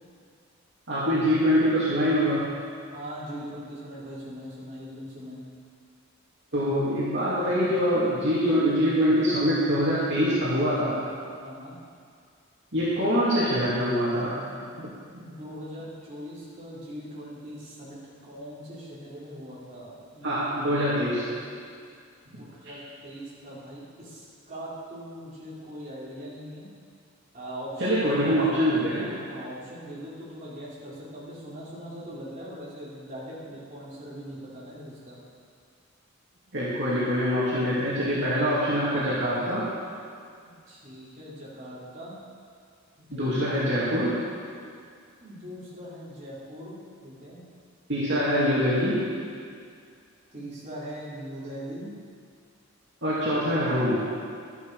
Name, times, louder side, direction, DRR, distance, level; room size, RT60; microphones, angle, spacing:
voice 1, 0.9-2.4 6.5-11.0 12.7-14.3 14.8-14.9 20.2-21.2 27.8-29.1 36.5-39.6 43.1-44.1 47.9-49.0 53.0-54.0, equal, 55° right, -10 dB, 2.5 m, -24 dB
voice 2, 2.9-5.4 11.4-11.8 15.2-21.0 22.2-26.7 27.3-35.2 40.7-42.2 43.2-43.3 45.2-47.4 50.3-51.9, equal, 35° right, -9 dB, 3.7 m, -41 dB
12.5 x 11.0 x 4.8 m, 2.2 s
head